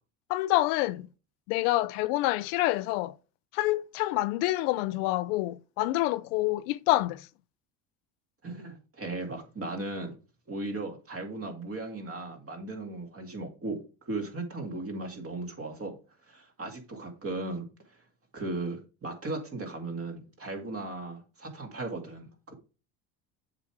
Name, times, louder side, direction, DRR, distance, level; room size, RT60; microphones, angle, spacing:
voice 1, 0.3-1.1 1.5-3.1 3.5-7.3, left 17 dB, 80° left, 0.6 m, -27 dB
voice 2, 8.4-10.1 10.5-15.9 16.3-17.7 18.3-22.5, right 2 dB, 30° right, 2.4 m, -37 dB
7.4 x 5.0 x 4.8 m
supercardioid pair, 95°, 45 cm